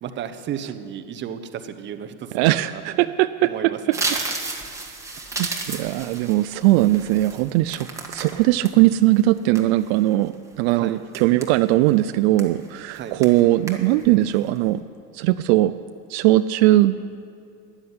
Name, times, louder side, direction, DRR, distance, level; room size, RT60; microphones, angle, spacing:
voice 1, 0.0-3.0 3.4-4.0 10.7-11.0 12.9-13.2, right 9 dB, 35° right, 9 dB, 0.9 m, -34 dB
voice 2, 2.3-4.0 5.4-14.8 15.1-15.7 16.1-17.0, right 16 dB, 70° right, 11 dB, 0.5 m, -19 dB
sound 1, 3.9-8.7 9.2-10.0 10.5-10.7 11.1-11.9 12.4-12.7 13.0-13.4 13.7-14.1 14.4-14.7, right 3 dB, 10° right, 1.6 m, -32 dB
13.0 x 9.8 x 9.6 m, 2.5 s
supercardioid pair, 140°, 33 cm